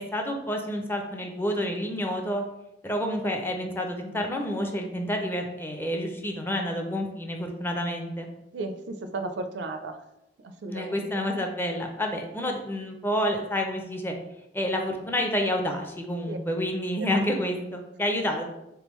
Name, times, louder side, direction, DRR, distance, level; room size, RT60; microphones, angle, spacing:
voice 1, 0.0-2.4 2.8-8.3 10.7-14.1 14.5-18.4, equal, 10° left, 3 dB, 0.4 m, -29 dB
voice 2, 8.5-10.0 10.4-11.2 12.5-12.6 16.3-16.4 17.0-17.1, right 3 dB, 75° right, 8 dB, 0.4 m, -35 dB
3.6 x 3.4 x 3.0 m, 0.88 s
head